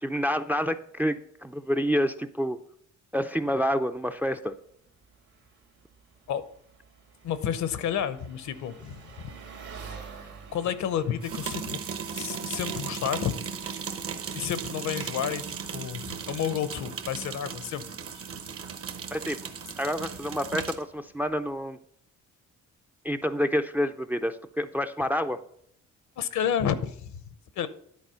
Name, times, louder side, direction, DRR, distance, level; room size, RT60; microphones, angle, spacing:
voice 1, 0.0-2.6 3.1-4.5 19.1-19.4 19.8-21.8 23.0-25.4, equal, 5° right, 10 dB, 0.4 m, -28 dB
Engine, 3.4-21.5, right 5 dB, 70° right, 2.0 m, -51 dB
voice 2, 7.2-9.3 10.5-11.8 12.1-13.3 13.8-13.9 14.3-15.4 15.7-17.8 18.1-18.3 26.2-27.2 27.6-27.7, left 9 dB, 70° left, 13 dB, 0.8 m, -30 dB
sound 1, 11.2-20.9, right 6 dB, 50° right, 0.9 m, -36 dB
10.5 x 4.2 x 5.6 m, 0.67 s
cardioid pair, 90°, 30 cm